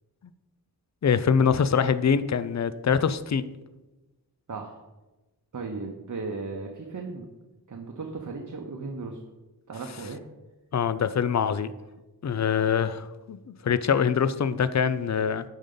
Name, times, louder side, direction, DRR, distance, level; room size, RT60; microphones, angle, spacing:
voice 1, 1.0-3.4 10.7-11.7 12.2-15.4, left 7 dB, 45° left, 14 dB, 0.4 m, -24 dB
voice 2, 5.5-7.3 7.7-9.2 9.7-10.2, right 3 dB, 45° right, 2 dB, 0.8 m, -36 dB
8.7 x 5.4 x 3.8 m, 1.1 s
wide cardioid pair, 65°, 41 cm